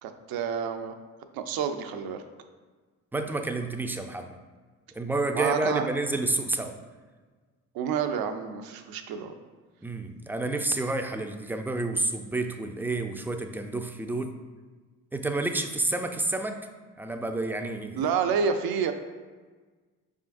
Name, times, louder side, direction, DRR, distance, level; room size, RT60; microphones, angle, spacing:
voice 1, 0.0-0.9 1.3-2.2 5.3-5.9 7.7-9.3 17.9-18.9, right 6 dB, 65° right, 7 dB, 0.6 m, -29 dB
voice 2, 3.1-4.4 4.9-6.7 9.8-14.4 15.1-16.7 17.0-18.0, right 2 dB, 5° right, 5 dB, 0.4 m, -29 dB
5.0 x 3.7 x 2.5 m, 1.4 s
hypercardioid pair, 55°, 39 cm